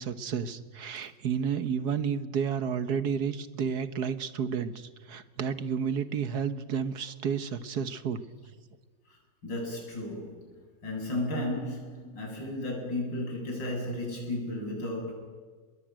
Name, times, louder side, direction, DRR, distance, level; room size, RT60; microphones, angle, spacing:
voice 1, 0.0-8.2, right 7 dB, 60° right, 11 dB, 1.7 m, -31 dB
voice 2, 9.4-10.5 10.8-15.1, left 1 dB, 80° left, 0 dB, 8.3 m, -34 dB
29.5 x 21.0 x 9.0 m, 1.5 s
omnidirectional pair, 2.0 m